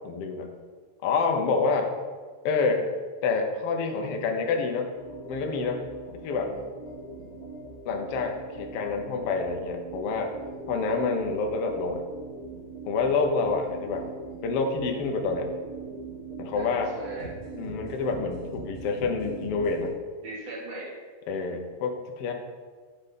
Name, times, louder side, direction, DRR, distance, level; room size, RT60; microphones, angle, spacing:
voice 1, 0.0-0.5 1.0-1.9 2.4-2.9 3.2-4.9 5.3-5.8 6.2-6.5 7.8-10.3 10.7-12.0 12.8-14.1 14.4-15.5 16.4-16.9 17.5-19.9 21.3-22.3, left 4 dB, 75° left, 3 dB, 1.3 m, -27 dB
sound 1, 4.9-19.9, right 4 dB, 20° right, 2.3 m, -42 dB
voice 2, 6.2-6.7 16.5-17.3 20.2-21.0 21.4-21.7, right 2 dB, 50° right, -4 dB, 2.6 m, -39 dB
8.7 x 5.3 x 5.8 m, 1.5 s
omnidirectional pair, 4.0 m